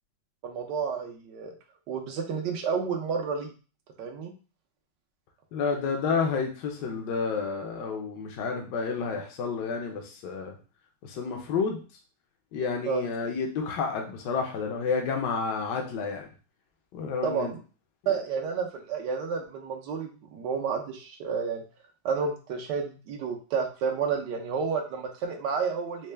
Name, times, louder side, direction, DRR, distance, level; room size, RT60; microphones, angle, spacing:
voice 1, 0.4-1.5 1.9-3.5 4.0-4.3 12.9-13.0 17.2-17.6 18.1-21.6 22.0-26.1, right 6 dB, 75° right, 3 dB, 1.3 m, -30 dB
voice 2, 5.5-10.5 11.0-11.8 12.5-16.3 16.9-17.5 18.0-18.1, left 5 dB, 75° left, 2 dB, 1.3 m, -30 dB
4.3 x 2.2 x 3.3 m, 0.35 s
omnidirectional pair, 1.9 m